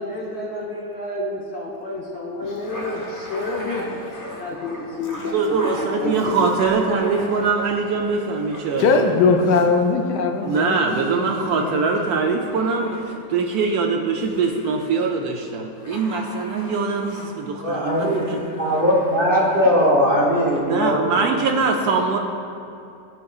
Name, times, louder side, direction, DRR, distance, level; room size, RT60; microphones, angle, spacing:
voice 1, 0.0-3.9 4.3-6.3 7.3-7.4, left 2 dB, 55° left, -5 dB, 0.7 m, -29 dB
sound 1, 2.4-20.6, left 1 dB, 20° left, 0.5 m, -39 dB
voice 2, 5.3-9.1 10.5-18.4 20.7-22.2, right 4 dB, 70° right, 2 dB, 0.9 m, -22 dB
voice 3, 8.8-12.1 21.9-22.0, left 4 dB, 75° left, 4 dB, 1.2 m, -21 dB
voice 4, 17.6-18.2 18.6-21.3, equal, 40° right, -5 dB, 0.8 m, -19 dB
13.5 x 4.7 x 2.4 m, 2.6 s
omnidirectional pair, 1.9 m